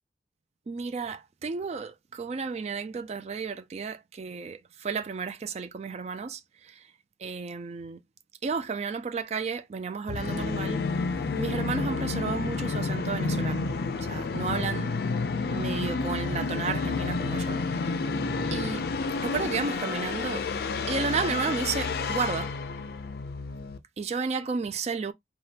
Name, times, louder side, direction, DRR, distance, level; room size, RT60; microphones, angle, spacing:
voice 1, 0.7-6.9 7.2-8.0 8.4-10.8 11.4-14.9 15.5-18.0 18.5-18.8 19.2-20.5 20.9-22.5 24.0-25.1, right 5 dB, 35° right, 0.3 m, -32 dB
Musical instrument, 10.1-23.8, left 4 dB, 60° left, 0.4 m, -30 dB
sound 1, 16.8-19.9, left 1 dB, 15° left, 0.8 m, -44 dB
3.3 x 2.2 x 2.8 m
head